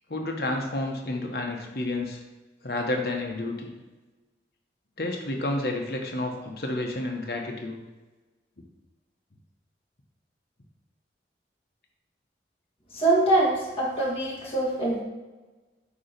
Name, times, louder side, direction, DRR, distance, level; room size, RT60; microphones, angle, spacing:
voice 1, 0.1-2.2 2.6-3.7 5.0-7.8, left 2 dB, 60° left, 2 dB, 1.1 m, -30 dB
voice 2, 12.9-15.0, right 2 dB, 30° left, -6 dB, 2.0 m, -24 dB
8.5 x 3.0 x 5.1 m, 1.2 s
head